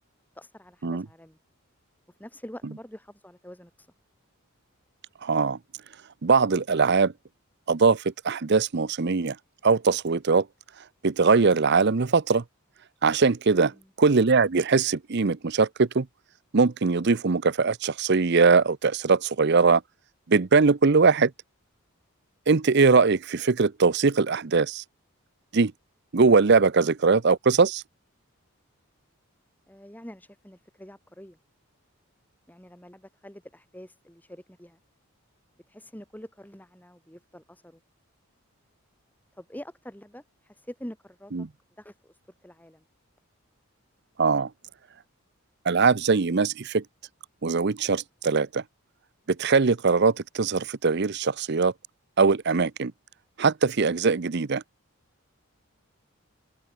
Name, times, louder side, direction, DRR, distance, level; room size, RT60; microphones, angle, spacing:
voice 1, 0.3-1.4 2.2-3.9 13.7-13.8 29.7-31.4 32.5-34.8 35.7-37.8 39.4-41.5 41.8-42.8, equal, 10° left, 4.2 m, -45 dB
voice 2, 5.2-5.6 6.2-7.1 7.7-9.3 9.6-10.5 11.0-12.4 13.0-13.7 14.0-16.1 16.5-19.8 20.3-21.3 22.5-24.8 25.5-25.7 26.1-27.8 41.3-41.5 44.2-44.5 45.7-46.8 47.4-48.6 49.4-51.7 52.2-52.9 53.4-54.6, right 4 dB, 50° right, 0.6 m, -21 dB
head